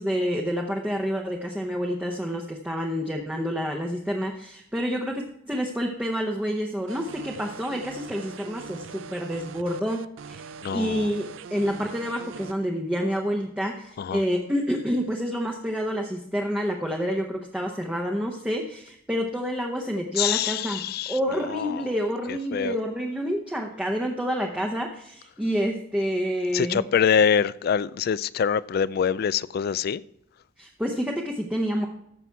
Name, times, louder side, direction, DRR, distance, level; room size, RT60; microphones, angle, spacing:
voice 1, 0.0-10.4 10.7-20.8 21.1-26.8 30.6-31.9, equal, 5° right, 0.8 m, -28 dB
sound 1, 6.9-12.5, right 6 dB, 90° right, 0.5 m, -42 dB
voice 2, 10.6-11.1 14.0-14.2 20.2-21.1 21.5-21.8 22.5-22.7 26.5-30.0, left 7 dB, 55° left, 0.3 m, -24 dB
14.0 x 5.8 x 4.6 m
head